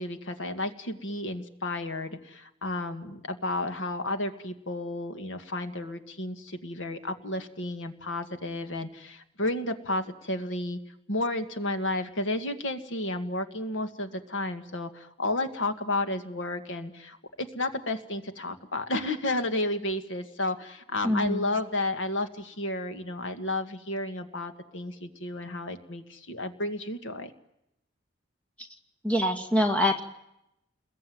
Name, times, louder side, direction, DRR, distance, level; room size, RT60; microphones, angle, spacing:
voice 1, 0.0-10.8 11.1-27.3, left 2 dB, 80° left, 8 dB, 1.9 m, -32 dB
voice 2, 21.0-21.4 29.0-30.0, left 1 dB, 5° left, 4 dB, 2.1 m, -24 dB
29.0 x 21.5 x 9.5 m, 0.83 s
head